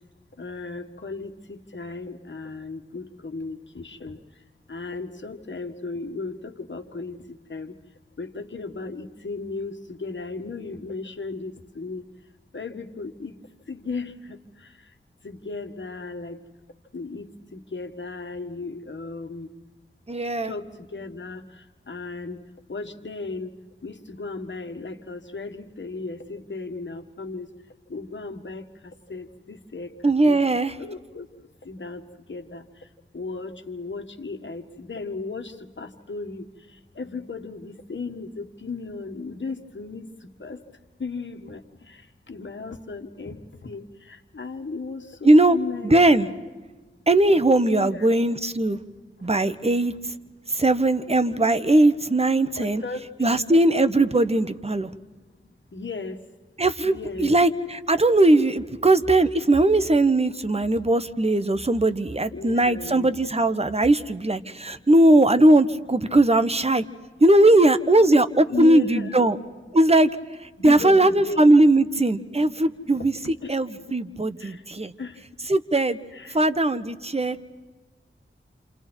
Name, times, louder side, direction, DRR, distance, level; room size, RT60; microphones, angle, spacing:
voice 1, 0.4-4.2 4.7-7.7 8.2-12.1 12.5-13.3 13.7-14.4 15.2-16.4 16.9-19.5 20.5-21.4 21.9-22.4 22.7-23.5 23.8-27.5 27.9-28.6 29.1-29.9 30.2-30.5 30.8-31.3 31.7-32.0 32.3-32.6 33.1-36.4 37.0-40.1 40.4-40.6 41.0-42.0 42.3-46.0 47.3-47.4 47.7-48.2 52.6-53.4 55.7-56.2 56.8-57.3 62.3-63.1 68.5-69.3 70.6-71.9 73.4-73.5 74.4-74.6 75.0-75.2 76.1-76.4, left 3 dB, 65° left, 6 dB, 1.8 m, -35 dB
voice 2, 20.1-20.5 30.0-30.7 45.2-45.6 45.8-46.3 47.1-48.8 49.2-49.9 50.5-52.8 53.2-54.9 56.6-66.8 67.2-69.4 69.7-70.1 70.6-73.1 73.5-74.9 75.5-76.0 76.3-77.4, right 2 dB, 30° right, 11 dB, 1.3 m, -19 dB
29.0 x 28.5 x 4.6 m, 1.3 s
cardioid pair, 45°, 21 cm